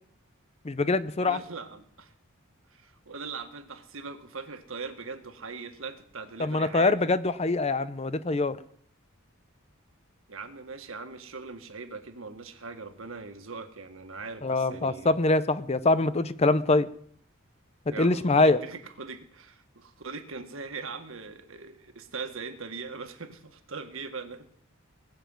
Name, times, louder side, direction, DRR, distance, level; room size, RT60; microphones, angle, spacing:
voice 1, 0.6-1.4 6.4-8.6 14.4-16.9 18.0-18.6, left 2 dB, 30° left, 14 dB, 0.6 m, -24 dB
voice 2, 1.2-2.1 2.7-7.1 10.3-15.2 17.9-24.5, right 4 dB, 70° right, 7 dB, 1.8 m, -40 dB
20.0 x 7.2 x 9.2 m, 0.62 s
head